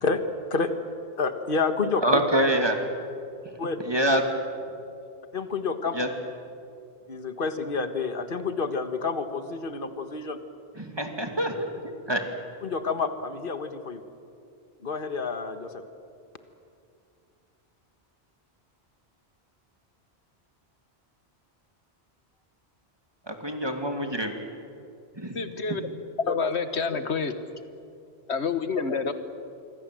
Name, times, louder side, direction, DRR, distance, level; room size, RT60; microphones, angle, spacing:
voice 1, 1.2-2.0 3.6-3.8 5.3-6.0 7.1-10.4 12.6-14.0 14.8-15.8 26.2-26.5, left 4 dB, 55° left, 8 dB, 1.7 m, -29 dB
voice 2, 2.0-2.8 3.8-4.2 5.9-6.1 10.8-11.6 11.8-12.2 23.3-24.3 25.2-25.4 25.7-25.8, right 1 dB, 25° right, 4 dB, 2.5 m, -25 dB
voice 3, 25.3-25.8 26.3-27.3 28.3-29.1, left 5 dB, 90° left, 10 dB, 1.7 m, -28 dB
26.5 x 24.5 x 7.7 m, 2.5 s
omnidirectional pair, 1.1 m